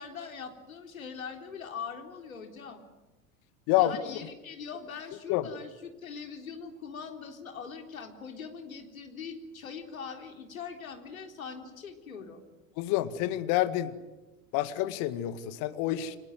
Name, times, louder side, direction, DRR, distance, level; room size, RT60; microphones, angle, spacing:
voice 1, 0.0-2.8 3.8-12.4, left 6 dB, 80° left, 4 dB, 3.8 m, -42 dB
voice 2, 3.7-4.0 5.3-5.5 12.8-13.9 14.5-16.2, left 14 dB, 50° left, 11 dB, 2.0 m, -28 dB
29.0 x 25.0 x 7.9 m, 1.1 s
figure-of-eight pair, 75°, 41 cm